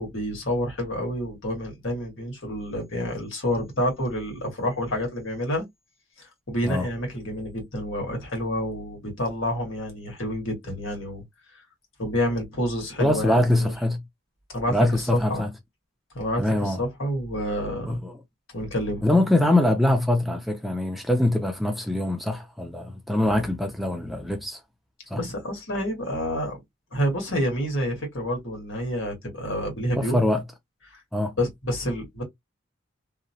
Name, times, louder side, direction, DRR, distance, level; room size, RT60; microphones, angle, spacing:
voice 1, 0.0-5.6 6.2-11.2 11.5-11.6 12.0-13.7 14.5-14.7 15.1-15.4 16.1-18.0 18.5-19.0 25.1-26.6 26.9-30.2 30.9-31.0 31.4-32.2, equal, 75° left, 1.5 m, -28 dB
voice 2, 13.0-14.0 14.7-15.5 16.4-16.8 17.8-18.2 19.0-24.6 25.1-25.2 29.9-30.4 31.1-31.3, left 1 dB, ahead, 0.4 m, -23 dB
2.8 x 2.0 x 2.7 m
head